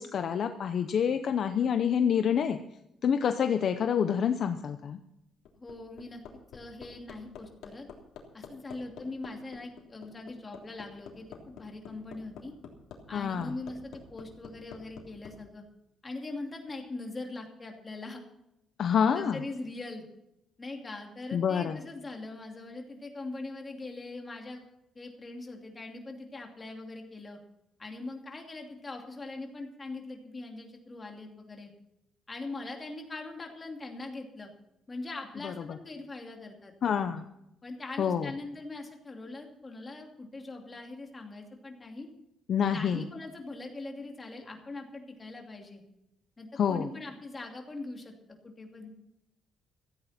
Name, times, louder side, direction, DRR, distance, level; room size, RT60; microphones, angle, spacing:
voice 1, 0.0-2.6 3.0-5.0 13.1-13.5 18.8-19.4 21.3-21.8 35.4-35.5 36.8-37.2 38.0-38.3 42.5-43.0 46.6-46.9, left 7 dB, 45° left, 8 dB, 0.7 m, -27 dB
Hammer, 5.2-15.3 16.7-16.8, left 7 dB, 75° left, 3.3 m, -47 dB
voice 2, 5.5-6.2 6.5-7.9 8.3-12.5 13.1-15.6 16.0-18.2 19.1-20.0 20.6-24.6 24.9-27.4 27.8-31.7 32.3-34.5 34.9-36.7 37.6-42.1 42.7-45.8 46.4-48.1 48.4-48.9, left 2 dB, 15° left, 2 dB, 2.6 m, -41 dB
16.0 x 14.5 x 4.3 m, 0.85 s
cardioid pair, 170°, 0 cm